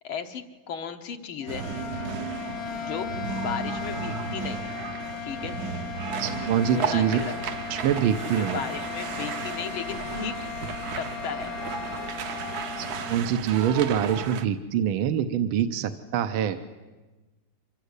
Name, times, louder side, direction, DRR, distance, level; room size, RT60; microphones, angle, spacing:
voice 1, 0.0-1.7 2.8-4.6 5.2-5.6 6.7-7.4 8.4-10.4 10.9-11.5, left 7 dB, 75° left, 6 dB, 2.1 m, -35 dB
sound 1, 1.4-13.2, left 10 dB, 60° left, 1.0 m, -37 dB
sound 2, 1.5-14.5, right 6 dB, 60° right, 1.2 m, -34 dB
voice 2, 6.2-7.2 7.7-8.6 12.8-16.6, right 9 dB, 75° right, 9 dB, 1.7 m, -25 dB
25.0 x 15.0 x 8.1 m, 1.2 s
omnidirectional pair, 2.3 m